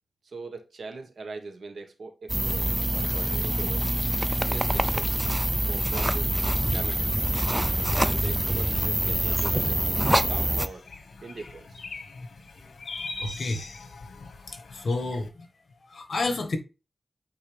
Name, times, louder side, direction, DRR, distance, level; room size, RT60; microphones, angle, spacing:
voice 1, 0.2-3.9 4.5-5.1 5.6-6.3 6.7-7.2 7.8-9.9 10.3-10.9 11.2-11.8, right 3 dB, 80° right, 1.4 m, -41 dB
sound 1, 2.3-10.7, right 1 dB, 10° right, 0.4 m, -25 dB
sound 2, 8.2-15.3, left 3 dB, 75° left, 1.1 m, -42 dB
voice 2, 13.2-13.7 14.5-15.3 15.9-16.6, left 2 dB, 55° left, 1.5 m, -30 dB
8.7 x 3.8 x 3.3 m
wide cardioid pair, 140°, 0 cm